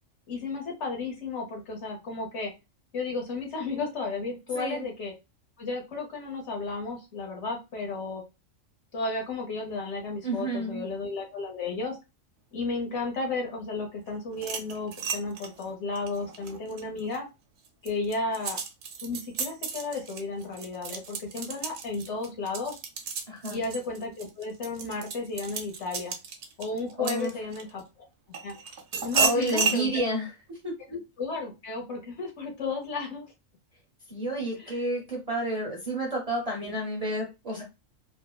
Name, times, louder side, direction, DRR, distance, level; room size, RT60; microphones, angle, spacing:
voice 1, 0.3-2.5 2.9-5.1 5.6-8.2 8.9-12.0 12.5-17.3 17.8-18.6 19.0-22.8 23.5-26.1 26.6-27.8 28.4-28.5 29.0-29.9 30.9-33.3 34.6-34.8 36.6-36.7, left 3 dB, 65° left, 1 dB, 1.1 m, -33 dB
voice 2, 10.2-10.9 23.3-23.6 27.0-27.3 29.1-30.3 30.6-30.7 34.1-37.6, right 1 dB, 40° right, -1 dB, 0.6 m, -30 dB
sound 1, 14.3-17.2 17.6-27.8 28.3-29.8, right 5 dB, 70° right, 0.9 m, -33 dB
3.2 x 2.1 x 2.2 m, 0.25 s
omnidirectional pair, 1.4 m